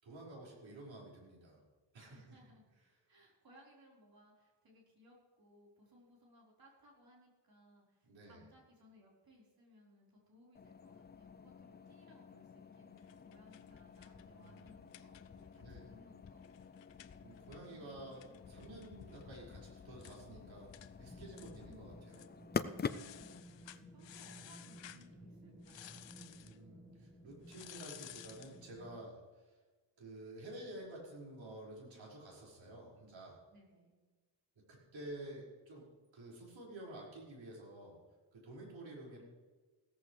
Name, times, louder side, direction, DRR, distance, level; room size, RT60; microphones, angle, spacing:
voice 1, 0.0-1.6 1.9-2.2 8.1-8.4 14.2-14.6 15.6-15.9 17.2-22.3 26.4-29.6 30.0-33.4 34.7-35.8 36.1-38.0 38.3-39.2, right 1 dB, 90° right, -4 dB, 5.5 m, -51 dB
voice 2, 2.1-2.6 3.1-16.5 21.3-22.1 23.0-26.1 33.5-34.0, equal, 50° right, -3 dB, 4.6 m, -64 dB
sound 1, 10.5-23.4, left 6 dB, 25° left, 0.4 m, -47 dB
sound 2, 13.0-15.6 15.9-16.0 16.3-19.4 19.7-19.8 20.0-20.2 20.7-20.9 21.3-21.8 22.1-22.3 22.8-25.1 25.6-26.6 27.5-28.6, left 12 dB, 75° left, 0.7 m, -56 dB
sound 3, 21.1-28.9, equal, 5° left, 1.6 m, -56 dB
16.5 x 14.0 x 3.3 m, 1.3 s
wide cardioid pair, 150°, 44 cm